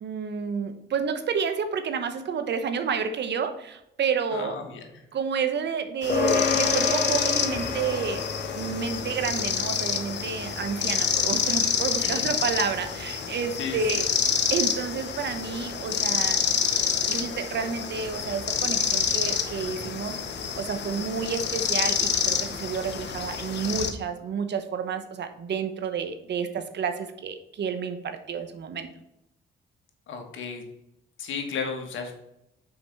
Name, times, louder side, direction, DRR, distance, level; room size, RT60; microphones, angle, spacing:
voice 1, 0.0-4.6 5.1-8.2 8.5-14.1 14.5-16.4 17.1-20.2 20.5-28.9, right 6 dB, 60° right, 9 dB, 1.0 m, -30 dB
voice 2, 4.3-4.8 12.0-12.3 13.6-14.0 30.1-30.6 31.2-32.1, left 5 dB, 80° left, 4 dB, 1.5 m, -34 dB
sound 1, 6.0-23.9, left 7 dB, 60° left, 1.0 m, -28 dB
sound 2, 6.1-15.8, left 4 dB, 45° left, 1.7 m, -32 dB
5.8 x 5.0 x 5.4 m, 0.84 s
cardioid pair, 80°, 20 cm